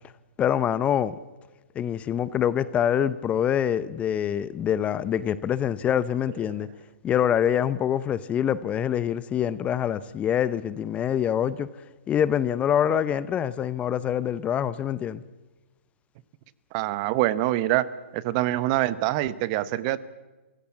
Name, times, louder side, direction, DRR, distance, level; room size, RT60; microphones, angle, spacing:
voice 1, 0.4-1.1 1.7-6.7 7.0-11.7 12.1-15.2, left 9 dB, 20° left, 17 dB, 0.7 m, -25 dB
voice 2, 16.7-17.8 18.1-20.0, right 15 dB, 35° right, 17 dB, 1.0 m, -25 dB
27.5 x 16.5 x 7.4 m, 1.2 s
hypercardioid pair, 130°, 7 cm